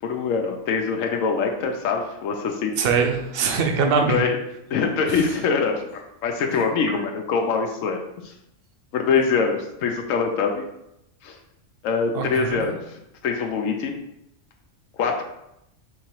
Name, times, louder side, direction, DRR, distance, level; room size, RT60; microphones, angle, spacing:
voice 1, 0.0-2.8 4.1-4.4 4.7-8.3 8.9-10.6 11.2-11.4 11.8-13.9 15.0-15.2, left 5 dB, 85° left, 2 dB, 1.0 m, -24 dB
voice 2, 2.8-4.2 6.9-7.0 12.1-12.7, right 5 dB, 55° right, 4 dB, 0.7 m, -22 dB
3.8 x 2.8 x 4.5 m, 0.83 s
omnidirectional pair, 1.3 m